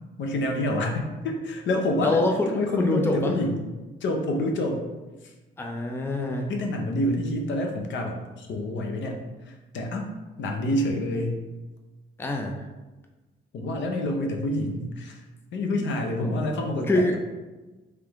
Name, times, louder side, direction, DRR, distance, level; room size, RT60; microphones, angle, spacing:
voice 1, 0.2-3.6 4.0-4.8 5.2-5.3 6.5-11.4 13.5-15.3 15.5-17.2, left 1 dB, 65° left, 3 dB, 0.7 m, -28 dB
voice 2, 2.0-3.3 5.6-6.5 12.2-12.6 15.8-15.9 16.2-16.4 16.9-17.2, left 2 dB, 10° left, 2 dB, 0.5 m, -25 dB
3.3 x 3.3 x 3.6 m, 1.2 s
cardioid pair, 90°, 20 cm